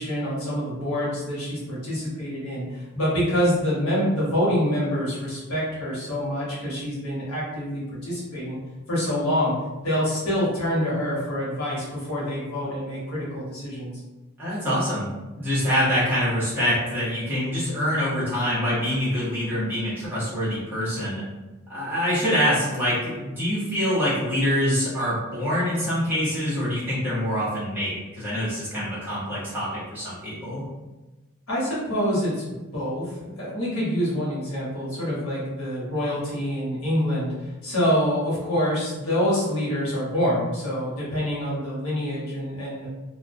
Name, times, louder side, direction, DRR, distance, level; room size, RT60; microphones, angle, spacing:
voice 1, 0.0-8.6 8.9-14.0 31.5-42.9, equal, 85° left, -7 dB, 1.0 m, -26 dB
voice 2, 14.4-15.1 15.3-21.2 21.7-30.6, equal, 10° right, -10 dB, 0.9 m, -25 dB
2.2 x 2.2 x 2.5 m, 1.1 s
head